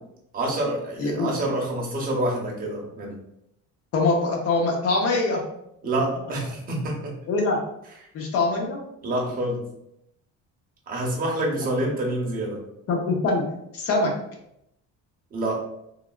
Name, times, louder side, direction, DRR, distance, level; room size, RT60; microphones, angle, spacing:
voice 1, 0.3-3.2 5.8-7.1 9.0-9.6 10.9-12.6 15.3-15.6, right 1 dB, 25° right, -2 dB, 0.7 m, -27 dB
voice 2, 1.0-1.3 3.9-5.4 7.3-7.6 8.1-8.8 11.6-11.7 12.9-13.5 13.7-14.1, left 3 dB, 50° left, 0 dB, 0.7 m, -23 dB
3.3 x 2.3 x 2.3 m, 0.79 s
cardioid pair, 160°, 31 cm